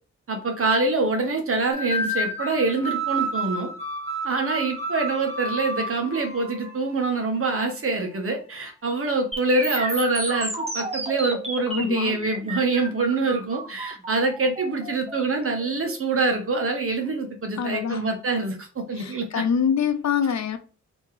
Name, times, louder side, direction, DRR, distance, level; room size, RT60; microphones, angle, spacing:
voice 1, 0.3-3.7 4.2-19.4, right 3 dB, 50° right, 1.2 m, -25 dB
sound 1, 1.7-6.8, right 1 dB, 20° left, 1.5 m, -30 dB
sound 2, 9.3-17.3, right 1 dB, 20° right, 1.2 m, -33 dB
voice 2, 11.7-12.1 17.6-18.0 19.0-20.6, left 7 dB, 70° left, 0.7 m, -25 dB
4.4 x 3.0 x 3.2 m
wide cardioid pair, 110°, 29 cm